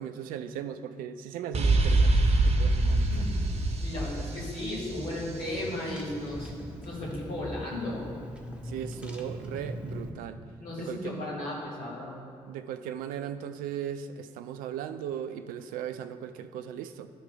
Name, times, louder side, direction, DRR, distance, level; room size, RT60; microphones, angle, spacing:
voice 1, 0.0-2.1 2.4-3.3 8.6-10.4 10.8-11.1 12.5-17.1, right 9 dB, 65° right, 11 dB, 0.5 m, -37 dB
sound 1, 1.5-5.3, right 2 dB, 40° right, 0.9 m, -24 dB
Car / Engine, 2.9-10.1, equal, 5° right, 1.0 m, -41 dB
voice 2, 3.8-6.5 6.8-8.1 10.6-12.2, left 1 dB, 70° left, -6 dB, 2.0 m, -35 dB
12.0 x 4.8 x 3.7 m, 2.4 s
figure-of-eight pair, 40°, 16 cm